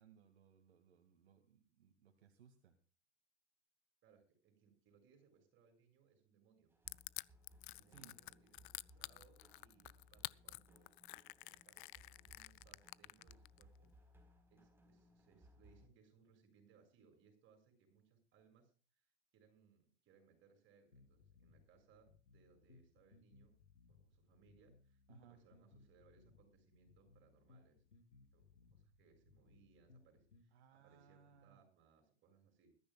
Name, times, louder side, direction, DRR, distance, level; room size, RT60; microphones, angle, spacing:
voice 1, 0.0-2.8 7.7-8.2 25.1-25.4 30.5-31.6, right 8 dB, 65° right, 5 dB, 2.3 m, -65 dB
voice 2, 4.0-6.7 7.7-13.9 14.5-23.5 23.9-27.8 28.3-28.4 28.7-32.7, right 6 dB, 35° right, 4 dB, 7.4 m, -70 dB
sound 1, 6.7-15.9, equal, 5° right, 4.4 m, -66 dB
Crushing, 6.9-13.6, left 21 dB, 50° left, 0.5 m, -49 dB
sound 2, 20.9-30.5, left 4 dB, 85° left, 3.8 m, -67 dB
21.5 x 13.5 x 2.4 m, 0.38 s
hypercardioid pair, 100°, 34 cm